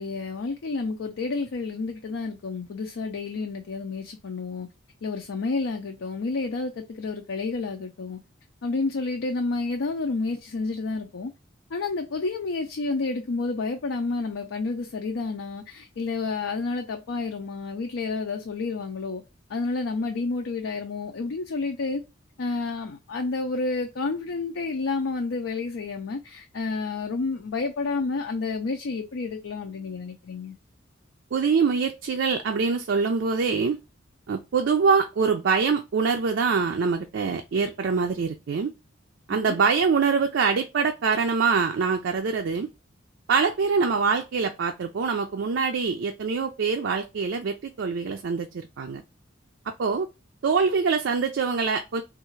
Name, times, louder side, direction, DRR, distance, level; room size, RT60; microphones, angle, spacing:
voice 1, 0.0-4.7 5.0-8.2 8.6-11.3 11.7-19.2 19.5-22.0 22.4-30.6 39.3-39.6, left 3 dB, 70° left, 0.5 m, -30 dB
voice 2, 31.3-33.8 34.3-38.7 39.3-42.7 43.3-49.0 49.8-50.1 50.4-52.0, right 5 dB, 65° right, 0.4 m, -24 dB
3.5 x 2.4 x 3.0 m
head